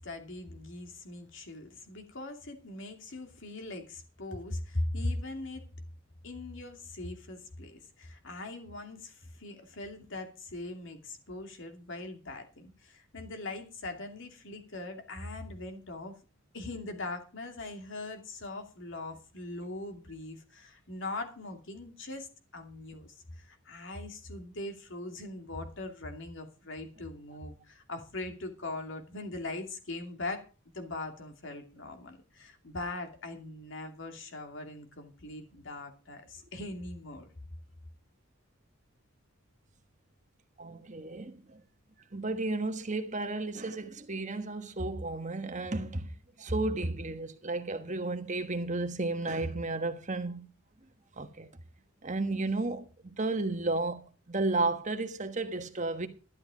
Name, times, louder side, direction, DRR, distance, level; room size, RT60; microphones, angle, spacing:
voice 1, 0.0-5.6 6.2-16.1 16.5-22.3 22.5-30.5 30.7-37.3, left 2 dB, 60° left, 2.6 m, -40 dB
voice 2, 40.6-41.6 42.1-46.1 46.4-50.5 51.2-51.5 52.0-56.1, right 2 dB, 35° right, 1.4 m, -33 dB
12.5 x 10.5 x 5.0 m
head